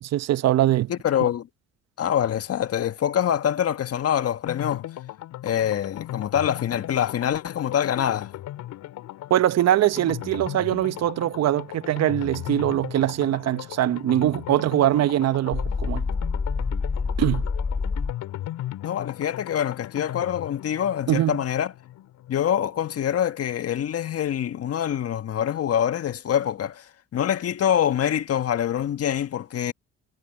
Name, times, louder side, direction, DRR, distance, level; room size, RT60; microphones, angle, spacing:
voice 1, 0.0-0.9 9.3-16.1 17.2-17.4 21.1-21.4, right 12 dB, 55° right, 1.1 m, -22 dB
voice 2, 0.9-1.5 2.0-4.9 5.4-8.3 18.8-21.7 22.3-29.7, left 9 dB, 50° left, 1.7 m, -25 dB
sound 1, 4.5-23.1 23.3-23.4 23.7-23.8, left 13 dB, 65° left, 3.8 m, -38 dB
sound 2, 15.5-18.1, left 4 dB, 30° left, 3.9 m, -26 dB
supercardioid pair, 70°, 31 cm